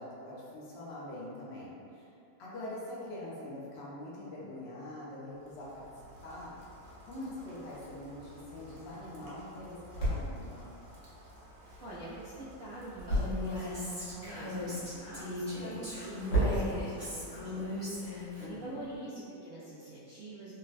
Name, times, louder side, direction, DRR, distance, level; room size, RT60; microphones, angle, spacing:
voice 1, 0.0-2.1 2.4-5.8 6.2-6.5 7.0-10.7 18.4-18.9, left 1 dB, 70° left, -7 dB, 0.6 m, -44 dB
Rain, 5.3-19.0, equal, 60° right, 0.9 m, -55 dB
sound 1, 8.4-19.0, right 1 dB, 90° left, 1.6 m, -38 dB
voice 2, 11.8-20.5, right 1 dB, 85° right, -9 dB, 0.6 m, -45 dB
Female speech woman speaking, 13.1-18.5, left 2 dB, 30° right, 0.8 m, -38 dB
3.8 x 2.1 x 2.4 m, 2.5 s
omnidirectional pair, 1.8 m